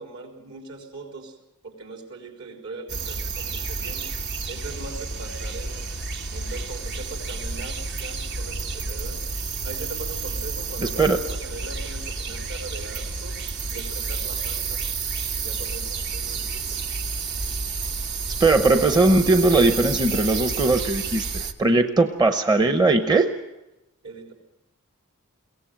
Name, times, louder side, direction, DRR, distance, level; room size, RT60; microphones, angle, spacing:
voice 1, 0.0-1.4 1.6-4.1 4.5-5.9 6.3-9.2 9.6-13.4 13.7-14.8 15.3-16.8 24.0-24.3, right 3 dB, 70° right, 2 dB, 4.0 m, -40 dB
sound 1, 2.9-21.5, right 4 dB, 55° right, 1.0 m, -30 dB
voice 2, 10.8-11.2 18.4-23.3, right 2 dB, 20° right, 7 dB, 0.8 m, -19 dB
22.5 x 17.5 x 7.7 m, 0.92 s
head